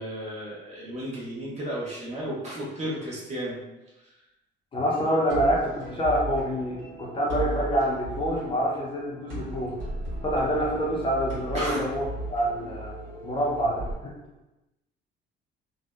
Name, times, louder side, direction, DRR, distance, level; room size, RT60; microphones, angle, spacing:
voice 1, 0.0-3.6 11.5-11.8, equal, 35° right, -6 dB, 0.9 m, -33 dB
voice 2, 4.7-9.8 10.2-12.0 12.3-12.9 13.2-14.1, equal, 25° left, -4 dB, 0.5 m, -26 dB
sound 1, 4.9-13.9, right 1 dB, 55° right, 1.2 m, -40 dB
sound 2, 5.3-13.2, right 1 dB, 75° right, 1.4 m, -38 dB
2.6 x 2.1 x 2.3 m, 1.0 s
cardioid pair, 115°, 19 cm